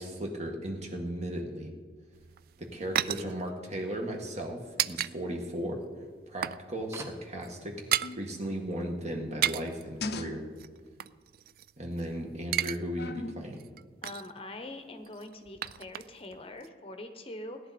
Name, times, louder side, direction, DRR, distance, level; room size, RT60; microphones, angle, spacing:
voice 1, 0.0-1.7 2.6-5.8 6.3-7.9 8.2-10.4 11.8-13.6, equal, 40° right, 2 dB, 1.7 m, -36 dB
sound 1, 2.1-5.1 5.4-5.6 5.9-6.7 6.9-7.1 7.3-8.2 9.2-9.8 10.6-12.0 12.3-12.8 13.1-13.2 13.6-14.4 15.0-16.3 16.6-16.7, right 12 dB, 55° right, 0.3 m, -33 dB
sound 2, 3.0-4.4 5.5-5.6 5.9-6.0 6.9-7.6, right 1 dB, 15° right, 0.9 m, -48 dB
sound 3, 8.0-8.4 9.6-10.8 13.0-13.6 15.5-15.8 16.3-16.4, left 3 dB, 60° left, 0.7 m, -40 dB
voice 2, 14.0-17.6, left 2 dB, 30° left, 7 dB, 0.9 m, -43 dB
17.5 x 11.0 x 4.2 m, 1.5 s
head